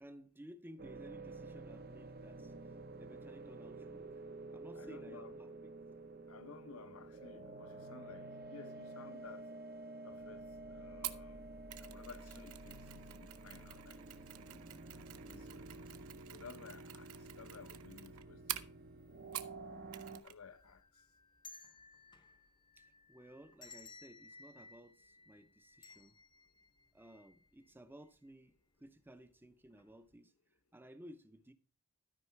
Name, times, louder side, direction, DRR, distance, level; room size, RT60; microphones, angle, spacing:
voice 1, 0.0-2.5 3.0-4.2 4.5-5.7 22.8-26.2 26.9-28.5 28.8-30.3 30.7-31.5, equal, 10° right, 0.7 m, -56 dB
sound 1, 0.8-20.2, right 2 dB, 45° right, 0.8 m, -50 dB
voice 2, 4.7-5.4 6.3-9.5 10.0-10.4 10.7-11.4 11.8-14.0 14.4-14.6 15.3-15.4 15.7-15.8 16.3-17.1 17.4-18.6 20.2-20.8, left 5 dB, 75° left, 0.8 m, -55 dB
Mechanisms, 11.0-19.6 19.9-20.4 20.6-20.8, right 13 dB, 80° right, 0.8 m, -48 dB
sound 2, 20.5-27.7 28.0-28.1 29.1-29.4 29.7-29.9, left 3 dB, 20° left, 0.8 m, -59 dB
13.0 x 5.5 x 4.6 m
head